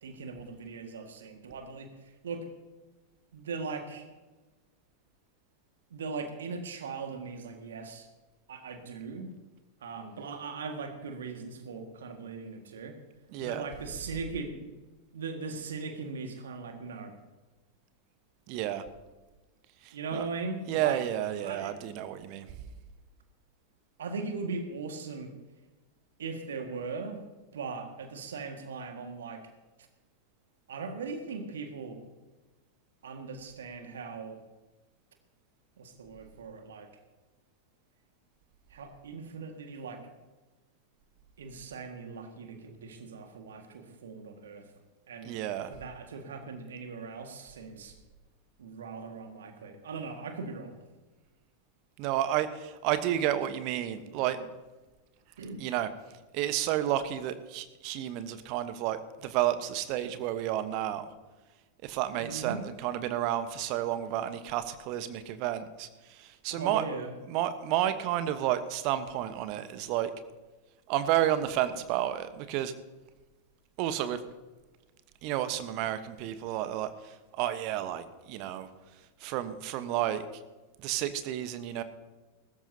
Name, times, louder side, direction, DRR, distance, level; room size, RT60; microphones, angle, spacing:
voice 1, 0.0-2.5 3.3-4.1 5.9-8.1 8.5-9.3 9.8-13.0 13.4-14.7 15.1-17.2 19.9-21.0 21.4-21.8 24.0-25.3 26.2-27.2 27.5-29.5 30.7-32.0 33.0-34.4 35.8-36.9 38.7-40.1 41.4-44.7 45.1-48.0 48.6-50.8 54.0-54.4 55.4-55.6 62.2-62.6 66.5-67.1, right 4 dB, 65° right, 5 dB, 1.8 m, -39 dB
voice 2, 13.3-13.7 18.5-18.8 19.8-20.2 20.7-22.5 45.2-45.7 52.0-54.4 55.6-55.9 56.3-61.0 61.8-66.8 67.2-70.1 70.9-72.7 73.8-74.2 75.2-78.7 79.2-80.2 80.8-81.8, right 12 dB, 45° right, 12 dB, 1.1 m, -31 dB
21.0 x 13.5 x 2.8 m, 1.2 s
figure-of-eight pair, 90°, 0 cm